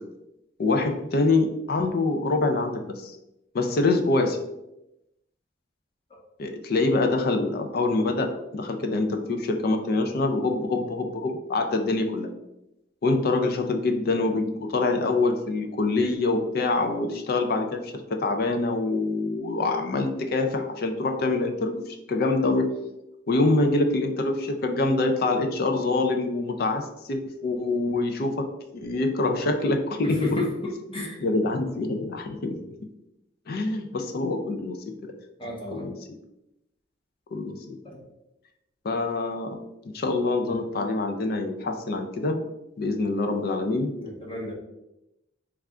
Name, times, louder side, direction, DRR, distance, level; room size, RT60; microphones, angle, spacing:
voice 1, 0.6-3.2 3.5-4.4 6.4-12.3 13.0-22.7 23.3-28.5 28.7-30.4 31.2-32.6 33.5-34.8 35.0-35.1 35.7-36.0 37.3-37.6 38.8-39.6 39.9-42.4 42.8-43.9, left 2 dB, 50° left, 5 dB, 0.4 m, -25 dB
voice 2, 30.0-31.2 35.4-35.9 37.8-38.0 43.9-44.5, left 1 dB, 25° left, -2 dB, 0.8 m, -32 dB
3.3 x 2.4 x 3.6 m, 0.89 s
head